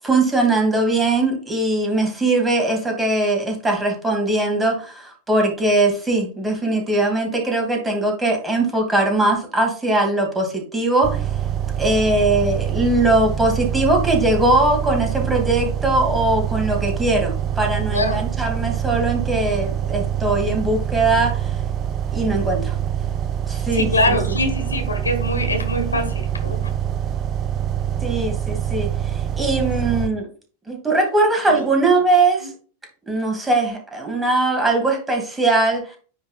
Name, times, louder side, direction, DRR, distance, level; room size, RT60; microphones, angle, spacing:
voice 1, 0.0-11.3 11.8-21.5 22.1-22.8 23.5-24.2 28.0-28.9 29.4-30.3 30.7-32.5 33.1-36.0, right 2 dB, 10° right, 2.3 m, -20 dB
sound 1, 11.0-30.1, right 9 dB, 30° right, 0.5 m, -25 dB
voice 2, 17.9-18.3 23.7-26.7 29.7-30.2 31.5-31.7 32.4-32.5, left 1 dB, 80° left, 1.4 m, -24 dB
9.5 x 3.3 x 3.7 m
figure-of-eight pair, 90°, 0 cm